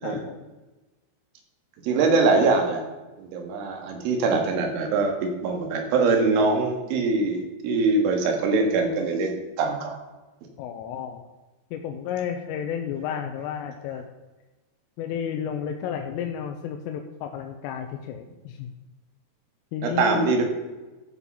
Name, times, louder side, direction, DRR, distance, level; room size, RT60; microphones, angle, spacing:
voice 1, 0.0-0.4 10.6-11.2 11.7-14.1 15.0-18.7 19.7-20.3, left 8 dB, 85° left, 4 dB, 3.3 m, -32 dB
voice 2, 1.8-2.8 3.2-10.0 19.8-20.4, right 3 dB, 75° right, 3 dB, 4.0 m, -23 dB
13.5 x 6.1 x 5.5 m, 1.1 s
omnidirectional pair, 5.9 m